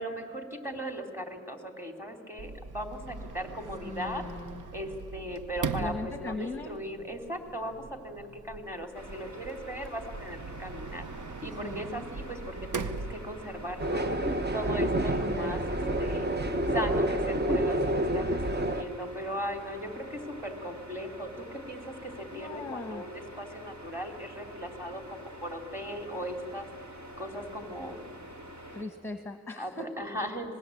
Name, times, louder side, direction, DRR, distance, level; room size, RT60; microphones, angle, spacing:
voice 1, 0.0-4.2 4.7-11.0 11.4-16.3 16.7-26.7 27.2-28.0 29.6-30.6, equal, 10° right, 4 dB, 3.3 m, -38 dB
Sliding door, 2.4-13.9, right 4 dB, 90° right, 1.0 m, -41 dB
voice 2, 3.9-4.6 5.8-6.8 11.6-11.9 15.2-15.5 22.3-23.0 28.7-29.9, left 3 dB, 10° left, 7 dB, 1.3 m, -39 dB
sound 1, 8.9-28.8, equal, 70° right, 3.7 m, -47 dB
sound 2, 13.8-18.8, right 1 dB, 35° right, 1.1 m, -28 dB
26.0 x 19.5 x 8.5 m, 2.4 s
wide cardioid pair, 75°, 30 cm